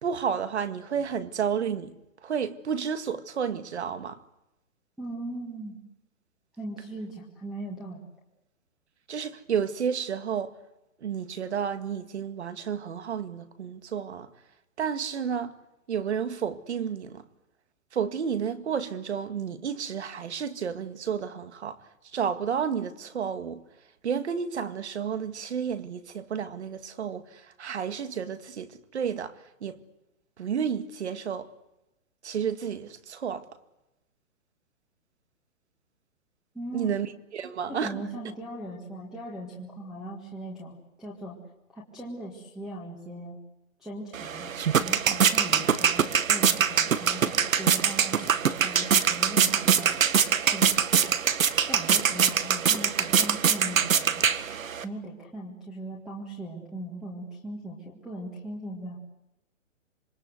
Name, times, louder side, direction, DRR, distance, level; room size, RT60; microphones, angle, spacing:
voice 1, 0.0-1.9 2.2-4.2 9.1-10.5 11.0-14.3 14.8-15.6 15.9-17.2 17.9-21.8 22.1-23.6 24.0-27.2 27.6-29.3 29.6-29.8 30.4-31.5 32.2-33.4 36.7-37.1 37.3-38.0, right 7 dB, 55° right, 2.1 m, -31 dB
voice 2, 5.0-5.8 6.6-8.0 36.5-36.9 37.7-41.3 41.7-43.4 43.8-50.0 50.5-50.8 51.7-54.3 54.8-59.0, right 1 dB, ahead, 1.8 m, -39 dB
sound 1, 44.1-54.9, right 7 dB, 80° right, 1.8 m, -24 dB
26.5 x 24.0 x 8.1 m
hypercardioid pair, 175°, 40 cm